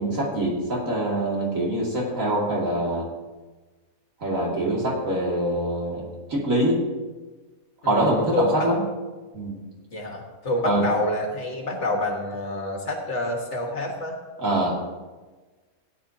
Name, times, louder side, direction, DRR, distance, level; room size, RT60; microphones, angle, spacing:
voice 1, 0.0-3.1 4.2-6.8 7.8-8.8 9.3-9.6 10.6-10.9 14.4-14.8, right 1 dB, 65° right, -3 dB, 2.8 m, -24 dB
voice 2, 7.8-8.7 9.9-14.2, left 1 dB, 50° left, 1 dB, 1.8 m, -28 dB
17.0 x 9.5 x 2.8 m, 1.3 s
omnidirectional pair, 1.5 m